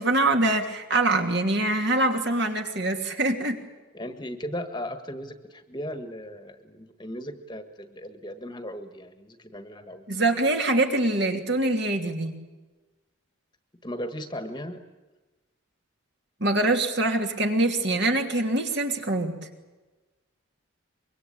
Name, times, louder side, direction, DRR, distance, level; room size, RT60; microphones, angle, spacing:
voice 1, 0.0-3.6 10.1-12.3 16.4-19.4, right 2 dB, 55° right, 4 dB, 2.8 m, -24 dB
voice 2, 3.9-10.1 13.8-14.8, equal, 20° left, 8 dB, 1.5 m, -37 dB
25.0 x 23.0 x 8.6 m, 1.2 s
head